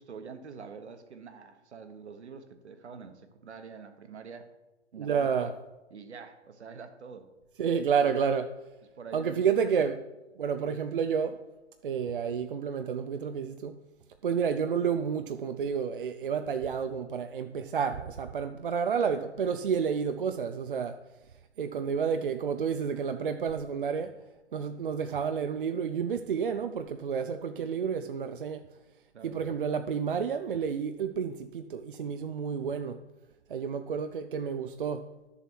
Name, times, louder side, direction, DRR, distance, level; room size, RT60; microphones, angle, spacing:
voice 1, 0.0-4.5 4.9-5.5 5.9-7.3 8.1-8.2 8.9-9.8 29.1-29.4, right 5 dB, 65° right, 1.3 m, -46 dB
voice 2, 5.0-5.5 7.6-8.6 9.1-10.0 10.4-11.4 11.8-13.7 14.2-21.0 21.6-24.1 24.5-28.6 29.2-33.0 33.5-35.1, right 6 dB, 45° right, 0.5 m, -30 dB
11.5 x 7.0 x 4.6 m
hypercardioid pair, 145°, 36 cm